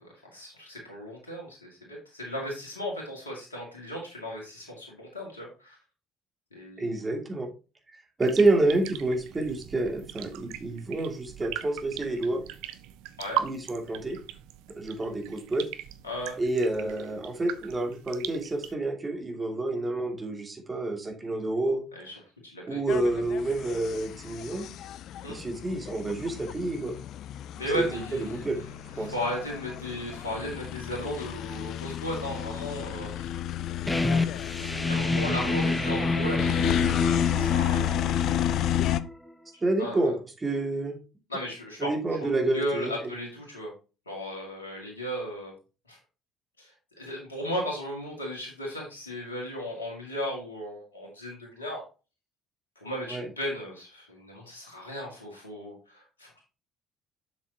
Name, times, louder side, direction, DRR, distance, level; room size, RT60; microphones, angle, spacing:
voice 1, 0.0-5.8 6.5-7.0 13.2-13.5 16.0-16.4 22.0-22.1 22.4-22.8 25.2-25.4 27.5-28.5 29.0-33.4 34.6-36.8 37.2-38.2 39.8-40.2 41.3-41.9 42.2-42.3 42.5-43.7 44.1-45.5 45.9-46.0 46.6-51.8 52.8-56.4, equal, 90° left, -1 dB, 2.3 m, -36 dB
voice 2, 6.8-7.5 8.2-12.4 13.4-14.2 14.8-15.7 16.4-21.8 22.7-24.7 25.3-27.0 27.7-27.8 28.1-28.6 29.0-29.1 39.6-40.1 40.4-41.0 41.8-42.9 53.1-53.3, right 2 dB, 25° right, 3 dB, 2.6 m, -28 dB
sound 1, 8.2-18.7, right 12 dB, 70° right, 0.6 m, -39 dB
sound 2, 22.9-39.0, left 11 dB, 60° left, 0.5 m, -31 dB
sound 3, 33.9-39.3, left 2 dB, 10° left, 1.1 m, -29 dB
7.2 x 7.1 x 2.9 m, 0.31 s
figure-of-eight pair, 50°, 0 cm